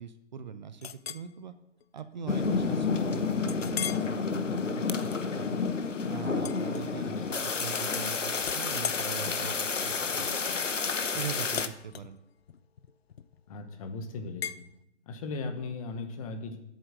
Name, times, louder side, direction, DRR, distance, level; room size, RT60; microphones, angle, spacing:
voice 1, 0.0-1.5 1.9-5.7 6.1-10.6 10.9-12.2, right 7 dB, 40° right, 11 dB, 0.6 m, -42 dB
Chink clink, 0.8-1.3 1.8-2.0 2.4-2.5 3.5-4.1 4.6-4.9 6.4-7.3 7.6-8.0 8.4-13.5 14.4-14.6, left 9 dB, 55° left, 0.6 m, -40 dB
sound 1, 2.3-11.7, left 5 dB, 85° left, 1.0 m, -30 dB
voice 2, 7.0-7.5 13.5-14.6 15.1-16.6, left 3 dB, 30° left, 7 dB, 1.1 m, -38 dB
8.1 x 7.9 x 7.9 m, 0.82 s
figure-of-eight pair, 135°, 36 cm